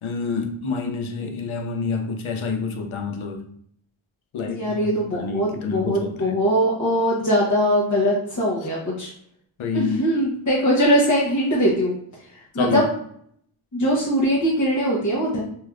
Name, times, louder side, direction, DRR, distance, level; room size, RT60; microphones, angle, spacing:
voice 1, 0.0-3.5 4.3-6.4 9.6-10.1 12.6-12.8, left 4 dB, 80° left, 5 dB, 0.6 m, -28 dB
voice 2, 4.4-9.1 9.7-11.9 12.5-12.9 13.7-15.4, equal, 35° left, -6 dB, 0.9 m, -21 dB
3.2 x 2.7 x 2.3 m, 0.65 s
cardioid pair, 60°, 48 cm